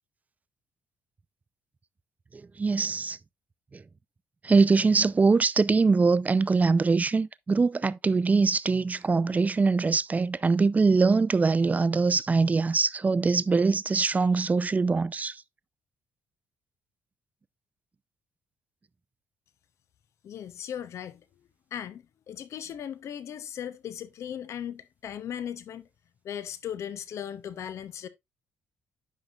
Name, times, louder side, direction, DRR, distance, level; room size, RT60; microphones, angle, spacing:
voice 1, 2.3-3.2 3.7-3.8 4.4-15.4, right 4 dB, 30° right, 0.5 m, -23 dB
voice 2, 20.2-21.2 21.7-25.9 26.2-28.1, left 9 dB, 60° left, 0.7 m, -37 dB
10.5 x 5.7 x 2.4 m
hypercardioid pair, 45°, 6 cm